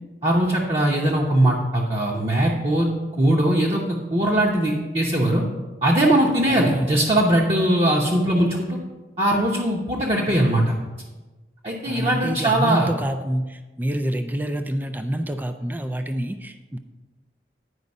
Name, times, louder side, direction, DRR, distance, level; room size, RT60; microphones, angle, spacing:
voice 1, 0.2-2.9 3.2-3.8 4.1-5.4 5.8-8.8 9.2-10.7 11.6-12.9, right 1 dB, 35° right, -3 dB, 0.8 m, -20 dB
voice 2, 6.5-6.9 11.9-16.8, right 1 dB, 10° right, 8 dB, 0.3 m, -27 dB
9.7 x 5.1 x 5.3 m, 1.2 s
head